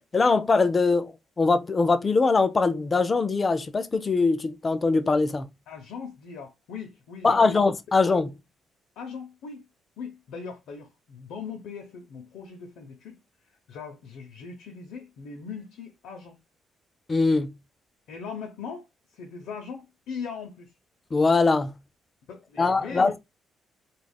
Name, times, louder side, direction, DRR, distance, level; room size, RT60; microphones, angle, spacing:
voice 1, 0.0-5.5 7.2-8.3 17.1-17.6 21.1-21.8 22.6-23.1, left 3 dB, 30° left, 0.4 m, -22 dB
voice 2, 5.7-7.6 9.0-9.6 10.0-13.2 13.4-16.4 18.1-20.7 22.3-23.2, left 6 dB, 85° left, 0.5 m, -40 dB
2.3 x 2.0 x 3.4 m
cardioid pair, 90°, 0 cm